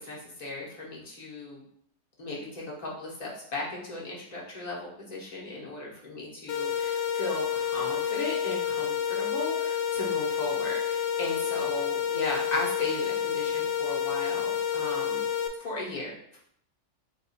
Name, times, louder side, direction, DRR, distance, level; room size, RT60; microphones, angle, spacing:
voice 1, 0.0-1.6 2.2-15.2 15.6-16.4, left 2 dB, 35° left, -5 dB, 1.2 m, -36 dB
sound 1, 6.5-15.5, left 8 dB, 80° left, 0.9 m, -29 dB
3.8 x 2.6 x 4.1 m, 0.68 s
omnidirectional pair, 1.2 m